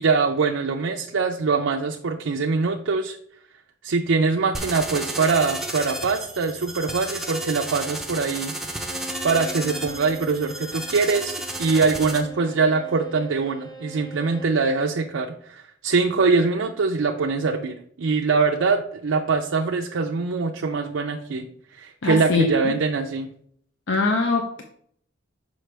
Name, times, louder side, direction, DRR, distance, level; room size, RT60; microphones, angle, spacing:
voice 1, 0.0-3.2 3.8-8.5 9.2-21.5 21.7-23.3, right 4 dB, 80° right, 1 dB, 0.5 m, -23 dB
sound 1, 4.5-12.2, right 1 dB, ahead, 0.5 m, -33 dB
Bowed string instrument, 8.7-14.6, equal, 20° left, 1.0 m, -41 dB
voice 2, 22.0-22.7 23.9-24.6, left 3 dB, 65° left, 4 dB, 0.6 m, -23 dB
6.3 x 5.0 x 3.3 m, 0.64 s
head